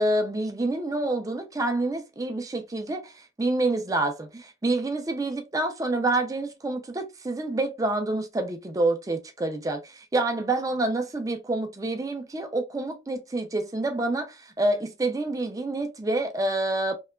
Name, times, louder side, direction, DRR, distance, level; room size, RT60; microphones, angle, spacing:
voice 1, 0.0-16.9, right 2 dB, 20° right, 0.4 m, -27 dB
2.8 x 2.2 x 2.2 m
head